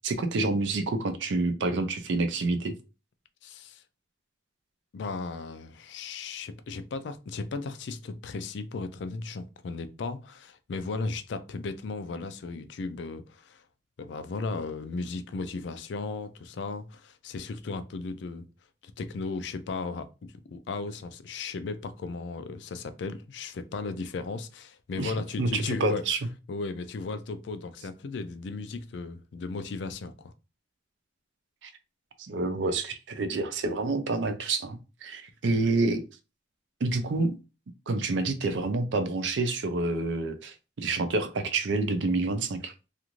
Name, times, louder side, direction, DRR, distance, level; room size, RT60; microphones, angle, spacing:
voice 1, 0.0-2.7 25.0-26.2 31.6-31.7 32.2-36.0 36.8-37.4 37.9-42.7, right 3 dB, 85° right, 0.5 m, -28 dB
voice 2, 3.4-3.8 4.9-13.6 14.0-18.4 18.8-26.0 26.5-30.3, left 3 dB, 75° left, 0.4 m, -36 dB
2.5 x 2.5 x 2.9 m
head